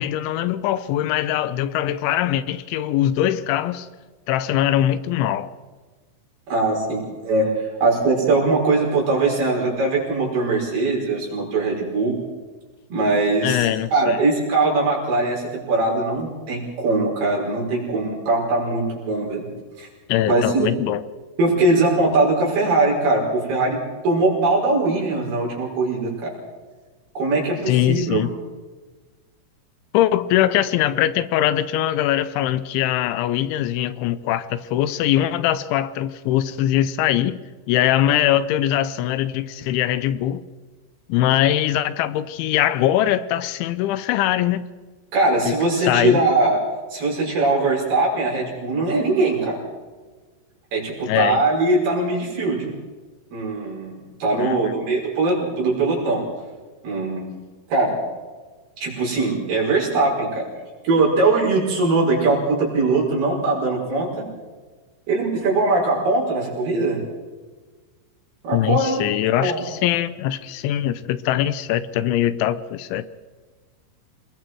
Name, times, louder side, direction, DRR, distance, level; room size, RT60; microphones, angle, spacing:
voice 1, 0.0-3.9 4.3-5.5 13.4-14.2 20.1-21.0 27.7-28.3 29.9-37.4 37.7-40.4 41.1-44.7 45.5-45.6 45.8-46.2 51.1-51.4 54.4-54.6 68.5-73.0, left 12 dB, 80° left, 14 dB, 3.1 m, -22 dB
voice 2, 6.5-12.2 12.9-19.4 19.8-19.9 20.3-20.7 21.4-26.3 27.2-28.2 45.1-46.6 46.9-49.6 50.7-52.7 53.3-56.3 56.8-57.3 57.7-58.0 58.8-60.5 60.8-64.1 65.1-67.0 68.4-69.0 69.4-69.6, right 2 dB, 55° right, -3 dB, 7.3 m, -21 dB
27.5 x 21.5 x 4.7 m, 1.4 s
omnidirectional pair, 5.4 m